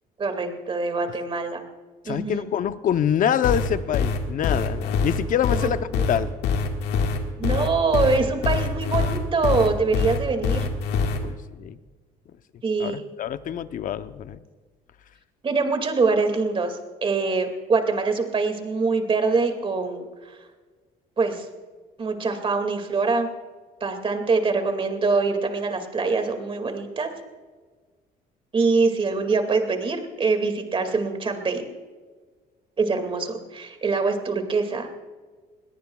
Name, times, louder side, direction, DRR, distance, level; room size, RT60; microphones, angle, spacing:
voice 1, 0.2-1.6 2.1-2.4 7.4-10.7 12.6-13.0 15.4-20.1 21.2-21.5 22.0-23.3 23.8-27.1 28.5-31.6 32.8-34.9, right 4 dB, 30° right, 6 dB, 2.2 m, -24 dB
voice 2, 2.0-6.3 11.2-11.8 12.8-14.4, left 9 dB, 55° left, 12 dB, 0.7 m, -26 dB
sound 1, 3.4-11.2, left 5 dB, 85° left, 1.7 m, -24 dB
21.5 x 17.5 x 2.3 m, 1.4 s
cardioid pair, 110°, 17 cm